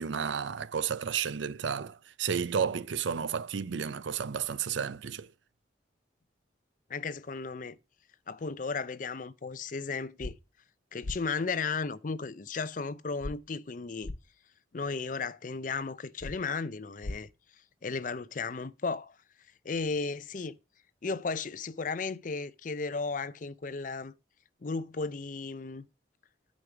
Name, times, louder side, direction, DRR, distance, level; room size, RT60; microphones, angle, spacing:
voice 1, 0.0-5.3, right 7 dB, 80° right, 0.5 m, -32 dB
voice 2, 6.9-7.8 8.3-10.4 10.9-14.1 14.7-17.3 17.8-19.2 19.6-20.5 21.0-24.1 24.6-25.8, left 4 dB, 45° left, 0.5 m, -35 dB
sound 1, 10.2-10.3 11.0-11.2 13.2-13.3 14.0-14.2 16.2-16.4 17.0-17.2, left 2 dB, 90° left, 0.8 m, -36 dB
10.0 x 5.2 x 5.9 m
head